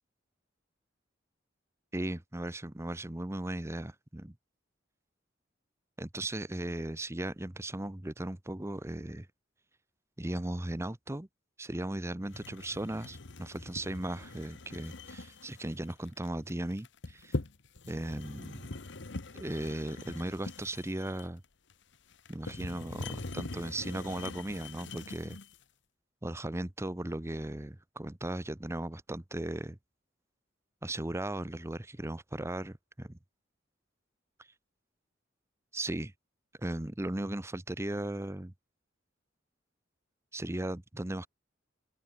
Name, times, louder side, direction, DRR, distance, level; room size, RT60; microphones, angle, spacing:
voice 1, 1.9-4.3 6.0-9.3 10.2-11.3 11.6-17.3 17.9-18.7 19.3-21.4 22.3-25.4 26.2-29.8 30.8-33.2 35.7-36.1 36.6-38.5 40.3-41.3, right 1 dB, 15° right, 0.8 m, -37 dB
sound 1, 12.3-25.6, left 2 dB, 65° left, 1.3 m, -43 dB
head